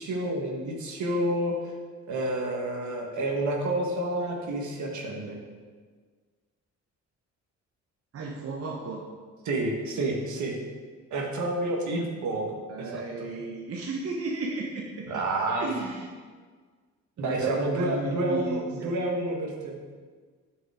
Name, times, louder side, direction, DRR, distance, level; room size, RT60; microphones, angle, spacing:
voice 1, 0.0-1.7 2.1-5.4 9.4-10.6 11.1-13.3 15.1-15.7 17.2-19.8, right 1 dB, 70° right, 0 dB, 1.6 m, -29 dB
voice 2, 8.1-9.0 12.7-15.1 15.6-16.1 17.2-18.9, right 3 dB, 50° right, -1 dB, 1.2 m, -34 dB
8.9 x 5.5 x 5.0 m, 1.6 s
cardioid pair, 90°, 30 cm